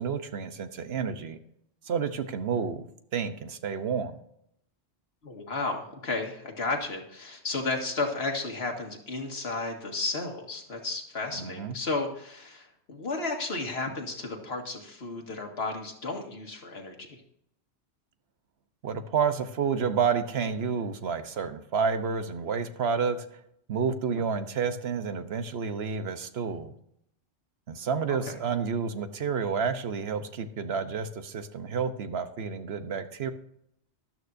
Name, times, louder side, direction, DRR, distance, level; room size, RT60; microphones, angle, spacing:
voice 1, 0.0-1.4 1.9-2.8 3.1-4.1 11.4-11.7 18.8-23.3 23.7-26.7 27.7-33.3, right 6 dB, 70° right, 10 dB, 1.1 m, -30 dB
voice 2, 5.2-17.2 28.1-28.3, left 3 dB, 70° left, 2 dB, 2.0 m, -33 dB
13.0 x 12.0 x 2.6 m, 0.74 s
omnidirectional pair, 1.1 m